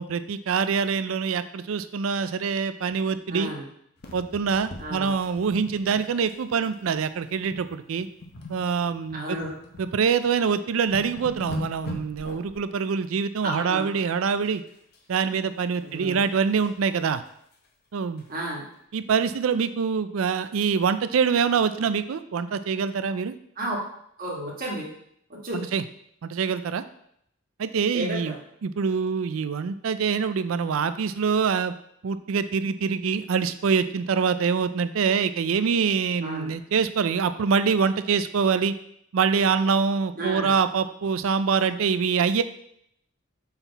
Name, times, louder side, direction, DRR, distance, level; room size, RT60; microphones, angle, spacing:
voice 1, 0.0-3.5 4.1-8.1 8.5-9.4 9.8-14.6 15.1-17.2 17.9-18.2 18.9-23.3 25.7-25.8 26.2-26.8 27.6-28.3 28.6-31.7 32.0-38.7 39.1-42.4, right 6 dB, 85° right, 12 dB, 0.4 m, -25 dB
voice 2, 3.3-3.7 4.8-5.2 9.1-9.5 13.4-13.9 15.8-16.2 18.3-18.6 23.6-23.8 24.2-24.9 25.3-25.6 27.9-28.4 36.2-36.5 40.2-40.5, right 1 dB, 45° right, -3 dB, 1.6 m, -32 dB
sound 1, 4.0-6.4 6.6-6.9 7.4-7.7 8.0-9.9 10.4-10.5 10.7-12.6 14.4-15.0 15.4-16.8 17.3-17.4 17.6-17.7 18.2-18.3, left 2 dB, 50° left, 0.9 m, -41 dB
5.9 x 4.0 x 4.0 m, 0.72 s
head